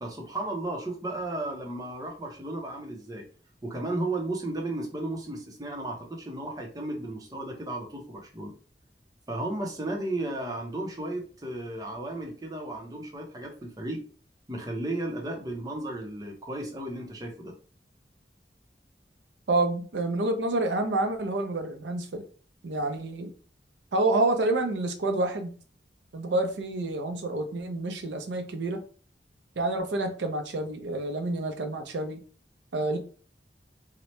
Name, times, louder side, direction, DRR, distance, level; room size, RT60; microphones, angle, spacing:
voice 1, 0.0-3.2 3.6-8.5 9.3-14.0 14.5-17.5, right 2 dB, 20° right, 1 dB, 0.6 m, -34 dB
voice 2, 19.5-22.3 22.6-23.3 23.9-25.5 26.1-28.8 29.6-32.2 32.7-33.0, right 2 dB, 90° right, 5 dB, 0.5 m, -28 dB
2.8 x 2.0 x 3.1 m, 0.40 s
head